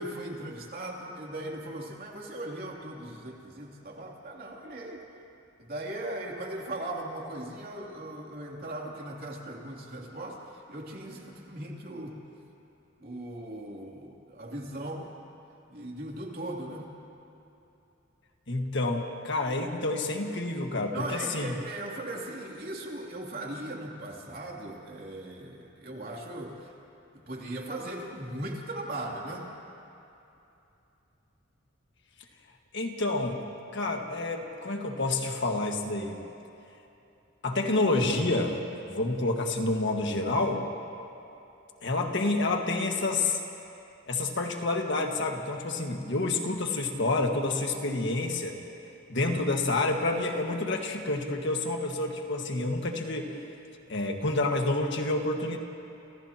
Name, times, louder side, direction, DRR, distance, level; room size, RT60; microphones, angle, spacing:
voice 1, 0.0-5.0 5.6-12.2 13.0-15.1 15.7-16.9 20.9-26.7 27.1-29.5, right 1 dB, 50° right, -2 dB, 3.0 m, -38 dB
voice 2, 18.5-21.5 32.7-33.4 33.7-36.2 37.4-38.6 38.9-40.7 41.8-43.4 44.1-48.6 49.1-53.4 53.9-55.6, left 2 dB, 60° left, 2 dB, 1.7 m, -28 dB
30.0 x 29.0 x 3.0 m, 2.9 s
head